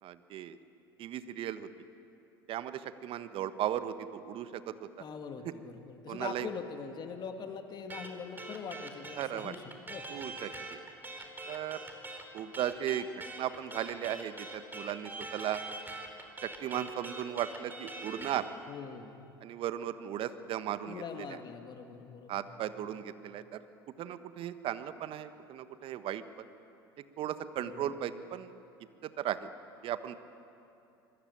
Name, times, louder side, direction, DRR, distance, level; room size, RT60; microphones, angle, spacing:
voice 1, 0.0-0.6 1.0-1.7 2.5-5.0 6.1-6.5 9.2-9.5 10.1-10.8 11.4-11.8 12.3-15.6 16.4-18.5 19.4-21.4 22.3-23.6 24.0-26.2 27.2-28.5 29.0-29.5 29.8-30.2, right 11 dB, 45° right, 12 dB, 1.4 m, -36 dB
voice 2, 5.0-9.6 9.9-10.0 18.7-19.3 20.9-22.7 27.6-27.9, left 6 dB, 35° left, 5 dB, 2.4 m, -43 dB
sound 1, 7.9-18.4, right 2 dB, 15° right, 4.1 m, -43 dB
25.0 x 21.0 x 8.9 m, 2.8 s
figure-of-eight pair, 75°, 13 cm